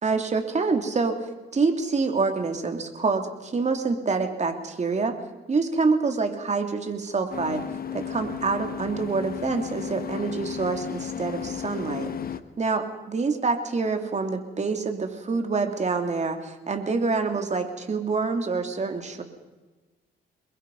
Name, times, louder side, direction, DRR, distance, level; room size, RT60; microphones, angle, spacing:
voice 1, 0.0-5.2 5.5-7.6 7.9-12.1 12.6-19.2, right 4 dB, 35° right, 5 dB, 3.0 m, -26 dB
sound 1, 7.3-12.4, left 9 dB, 50° left, 1.2 m, -34 dB
28.0 x 22.5 x 5.5 m, 1.2 s
cardioid pair, 90°, 20 cm